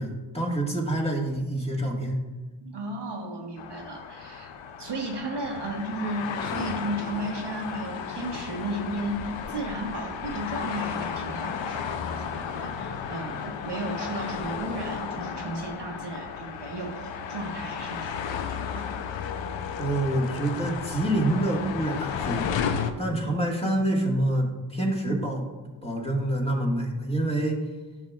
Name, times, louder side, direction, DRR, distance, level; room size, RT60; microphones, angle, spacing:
voice 1, 0.0-2.2 19.8-25.5 25.8-27.6, right 1 dB, 10° left, -2 dB, 1.7 m, -27 dB
voice 2, 2.6-4.5 4.8-18.9, right 1 dB, 60° right, 1 dB, 1.2 m, -34 dB
sound 1, 3.6-22.9, left 7 dB, 65° left, 0.7 m, -33 dB
10.5 x 5.9 x 2.4 m, 1.2 s
cardioid pair, 60°, 48 cm